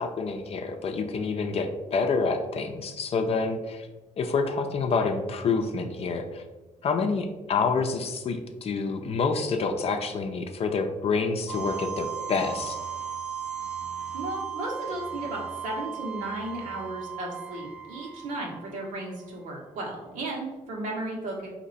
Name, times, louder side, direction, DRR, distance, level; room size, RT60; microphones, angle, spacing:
voice 1, 0.0-3.9 4.2-6.4 6.8-12.8, left 4 dB, 50° left, 5 dB, 0.5 m, -27 dB
sound 1, 11.5-19.3, right 8 dB, 10° right, 0.5 m, -36 dB
voice 2, 14.1-21.5, right 1 dB, 80° right, -3 dB, 1.4 m, -35 dB
4.2 x 2.9 x 4.1 m, 1.1 s
cardioid pair, 100°, 13 cm